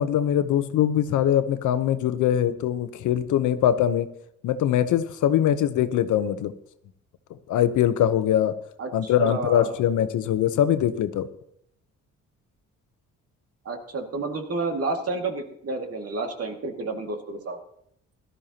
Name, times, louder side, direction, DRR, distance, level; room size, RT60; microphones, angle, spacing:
voice 1, 0.0-4.1 4.4-6.5 7.5-8.5 8.9-11.3, left 10 dB, 80° left, 11 dB, 0.9 m, -22 dB
voice 2, 8.8-9.7 13.6-17.6, right 3 dB, 50° right, 4 dB, 2.2 m, -30 dB
17.0 x 12.5 x 2.9 m, 0.72 s
cardioid pair, 90°, 30 cm